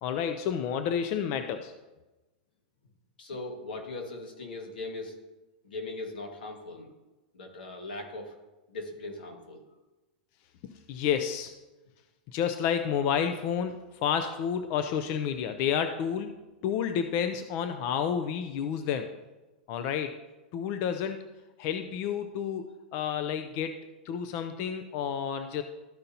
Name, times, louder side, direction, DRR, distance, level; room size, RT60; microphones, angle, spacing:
voice 1, 0.0-1.7 10.6-11.5 12.3-16.3 16.6-19.1 19.7-20.2 20.5-21.2 21.6-25.6, left 8 dB, 45° left, 8 dB, 0.5 m, -30 dB
voice 2, 3.2-5.1 5.6-6.9 7.3-8.4 8.7-9.6, left 2 dB, 90° left, 2 dB, 1.8 m, -39 dB
13.0 x 5.2 x 2.8 m, 1.1 s
hypercardioid pair, 130°, 5 cm